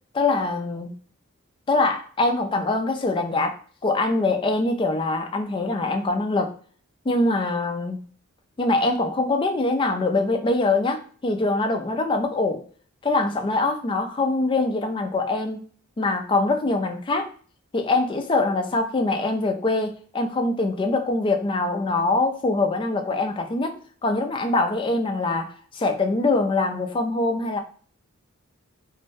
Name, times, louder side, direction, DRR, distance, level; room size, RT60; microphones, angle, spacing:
voice 1, 0.1-0.9 1.7-6.5 7.1-8.0 8.6-12.6 13.0-15.6 16.0-17.3 17.7-27.6, left 2 dB, 25° left, 0.3 m, -23 dB
2.6 x 2.1 x 3.3 m
head